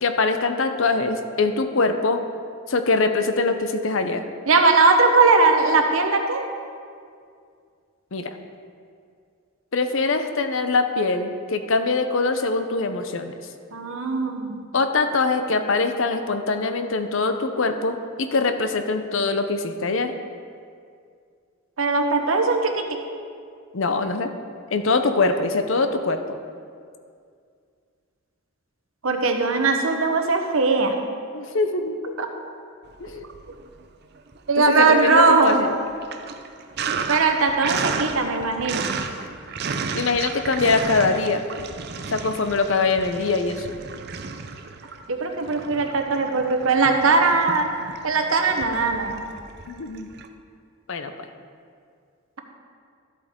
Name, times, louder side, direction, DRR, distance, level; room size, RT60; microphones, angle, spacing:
voice 1, 0.0-2.2 2.7-4.2 8.1-8.3 9.7-13.4 14.7-20.1 23.7-24.3 24.7-26.2 31.3-32.1 33.0-33.3 34.7-35.8 39.9-41.4 42.1-43.7 49.7-50.1 50.9-51.1, left 3 dB, 60° left, 8 dB, 0.6 m, -23 dB
voice 2, 4.5-6.4 13.7-14.6 21.8-22.8 29.0-31.0 32.2-32.3 34.5-35.6 37.1-39.0 45.1-47.7 48.0-49.2, right 3 dB, 70° right, 4 dB, 0.9 m, -19 dB
Sink (filling or washing), 32.9-33.8 34.2-50.3, right 5 dB, 50° right, 0.5 m, -33 dB
13.0 x 8.3 x 3.7 m, 2.3 s
head